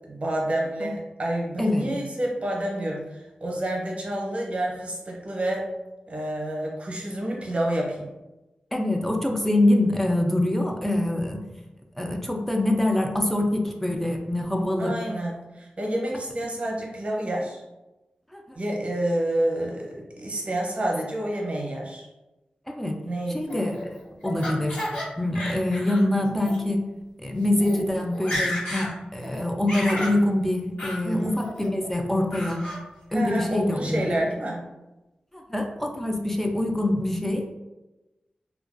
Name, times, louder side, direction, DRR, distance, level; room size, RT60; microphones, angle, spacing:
voice 1, 0.1-5.7 6.1-8.1 14.8-17.6 18.6-22.1 23.1-23.4 31.0-31.5 33.1-34.6, right 1 dB, 45° right, -2 dB, 0.6 m, -28 dB
voice 2, 1.6-1.9 8.7-11.4 12.0-14.9 18.3-18.6 22.7-23.0 23.3-23.8 24.2-24.8 25.2-26.9 27.2-32.7 33.1-34.2 35.3-37.5, left 1 dB, 10° left, 2 dB, 0.3 m, -25 dB
Laughter, 23.5-25.0 25.3-26.0 26.4-26.6 27.2-27.3 27.5-27.8 28.1-28.9 29.2-30.2 30.8-31.0 31.4-31.9 32.3-32.8, left 1 dB, 85° left, 1.0 m, -31 dB
2.3 x 2.2 x 2.4 m, 1.0 s
wide cardioid pair, 70°, 3 cm